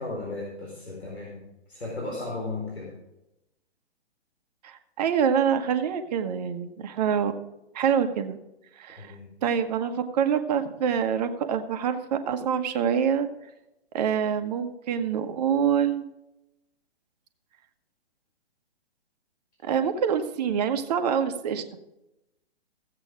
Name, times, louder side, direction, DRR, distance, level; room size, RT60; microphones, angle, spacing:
voice 1, 0.0-1.4 1.7-2.9 8.9-9.3, left 2 dB, 75° left, -2 dB, 4.3 m, -35 dB
voice 2, 4.6-7.3 7.7-8.4 8.8-9.1 9.4-13.3 13.9-16.1 19.6-21.6, right 7 dB, 40° right, 7 dB, 1.2 m, -26 dB
15.5 x 8.2 x 5.0 m, 0.91 s
figure-of-eight pair, 125°, 33 cm